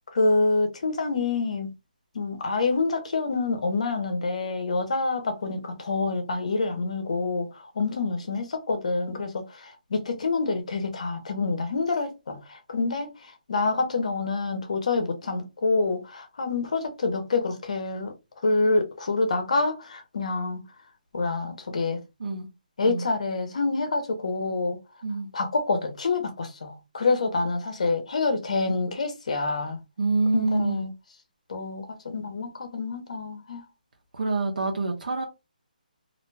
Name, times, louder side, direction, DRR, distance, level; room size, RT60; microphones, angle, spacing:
voice 1, 0.1-1.7 2.1-18.1 18.4-20.6 21.1-22.0 22.8-24.8 25.3-29.8 30.3-30.9 31.5-33.6, left 3 dB, 45° left, 0.7 m, -27 dB
voice 2, 30.0-30.8 34.1-35.2, right 3 dB, 65° right, 0.7 m, -26 dB
2.4 x 2.2 x 3.2 m
hypercardioid pair, 175°, 5 cm